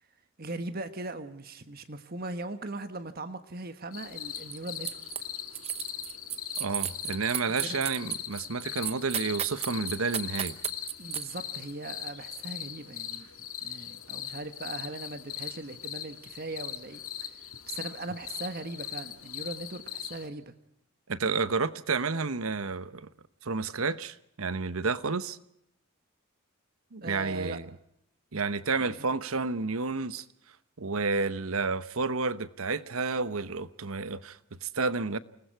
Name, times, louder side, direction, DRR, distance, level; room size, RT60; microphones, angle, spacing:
voice 1, 0.4-5.0 7.5-7.9 11.0-13.3 13.6-17.3 17.7-20.5 27.0-27.6 28.8-28.9 29.3-29.4, right 2 dB, 45° right, 1.3 m, -39 dB
sound 1, 3.9-20.3, left 10 dB, 85° left, 2.0 m, -40 dB
sound 2, 4.3-5.2 5.5-11.2, right 9 dB, 30° right, 1.0 m, -34 dB
voice 2, 6.6-10.6 21.1-23.1 23.4-25.4 26.9-27.7 28.3-30.2 30.8-35.2, right 4 dB, 80° right, 1.0 m, -30 dB
29.5 x 20.0 x 4.7 m
head